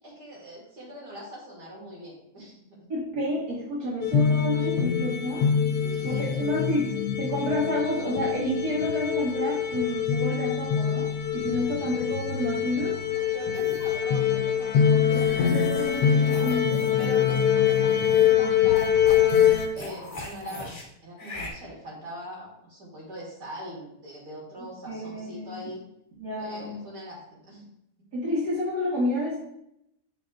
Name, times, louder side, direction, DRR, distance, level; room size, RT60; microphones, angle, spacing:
voice 1, 0.0-2.9 5.8-6.4 11.6-11.8 13.1-16.6 17.0-19.4 19.7-20.8 21.0-25.8 26.4-27.7 28.0-28.1, equal, 85° right, -5 dB, 2.8 m, -42 dB
voice 2, 2.9-5.5 6.0-6.9 7.2-11.1 11.3-12.9 15.1-15.2 15.5-17.0 24.9-25.6 26.1-26.8 28.1-29.4, equal, 70° right, -7 dB, 2.3 m, -29 dB
sound 1, 4.0-19.7, left 8 dB, 80° left, 1.3 m, -24 dB
sound 2, 13.5-14.0 15.0-18.4 18.8-20.8 21.2-21.5, left 2 dB, 30° left, 0.9 m, -40 dB
6.8 x 5.7 x 2.5 m, 0.78 s
omnidirectional pair, 1.8 m